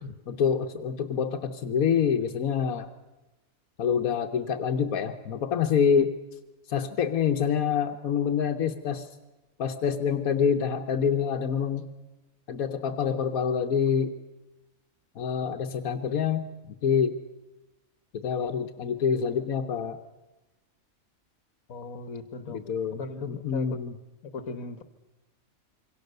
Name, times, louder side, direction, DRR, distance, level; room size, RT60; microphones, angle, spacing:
voice 1, 0.3-2.9 3.8-6.1 6.7-9.1 9.6-11.9 12.5-14.1 15.1-17.2 18.1-20.0 22.5-24.0, left 7 dB, 90° left, 5 dB, 1.5 m, -26 dB
voice 2, 21.7-22.6 23.0-23.7 24.2-24.8, left 4 dB, 75° left, 10 dB, 1.8 m, -38 dB
26.5 x 23.5 x 6.7 m, 1.1 s
omnidirectional pair, 1.5 m